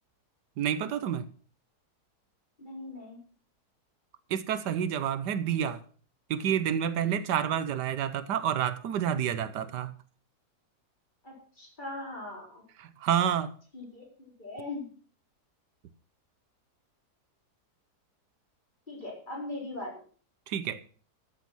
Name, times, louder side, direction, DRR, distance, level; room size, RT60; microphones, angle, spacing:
voice 1, 0.6-1.3 4.3-5.8 6.3-9.9 12.8-13.5 20.5-20.8, right 9 dB, 90° right, 1.5 m, -29 dB
voice 2, 2.6-3.2 11.2-12.6 13.7-14.9 18.9-19.9, left 2 dB, 30° left, 4.8 m, -40 dB
13.5 x 7.5 x 6.1 m
omnidirectional pair, 1.8 m